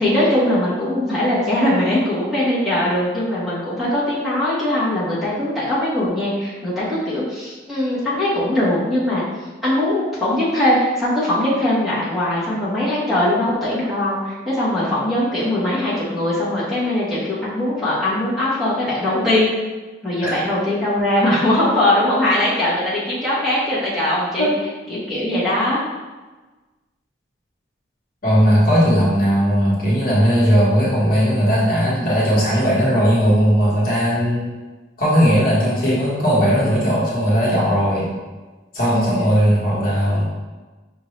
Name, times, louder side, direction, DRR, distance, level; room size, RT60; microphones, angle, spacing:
voice 1, 0.0-9.2 9.6-19.5 20.0-24.5 24.9-25.8 38.9-39.3, left 1 dB, ahead, -11 dB, 1.1 m, -20 dB
voice 2, 28.2-34.5 35.0-38.1 38.7-40.2, equal, 50° left, -7 dB, 1.3 m, -17 dB
5.6 x 2.6 x 3.1 m, 1.2 s
head